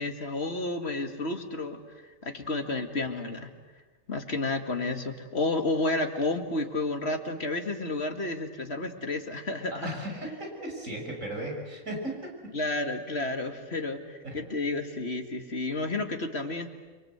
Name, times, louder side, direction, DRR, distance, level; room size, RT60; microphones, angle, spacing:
voice 1, 0.0-1.8 2.2-3.5 4.1-9.9 12.5-16.7, left 2 dB, 45° left, 5 dB, 2.4 m, -31 dB
voice 2, 9.7-12.3 14.2-14.4, right 1 dB, 60° right, 0 dB, 6.3 m, -36 dB
29.5 x 23.5 x 8.2 m, 1.3 s
omnidirectional pair, 1.5 m